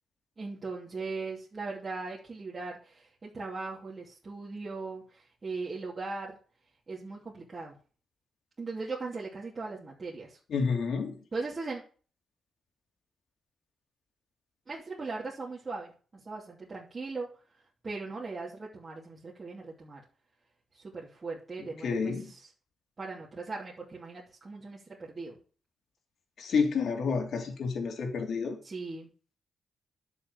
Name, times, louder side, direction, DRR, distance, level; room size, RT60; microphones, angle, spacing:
voice 1, 0.4-6.3 6.9-7.7 8.6-10.4 11.3-11.8 14.7-17.3 17.8-20.0 20.7-22.5 23.0-25.4 28.6-29.1, right 3 dB, 30° right, -5 dB, 2.9 m, -39 dB
voice 2, 10.5-11.1 21.8-22.3 26.4-28.6, left 5 dB, 65° left, 3 dB, 3.4 m, -29 dB
11.5 x 6.9 x 7.1 m, 0.39 s
wide cardioid pair, 140°, 0 cm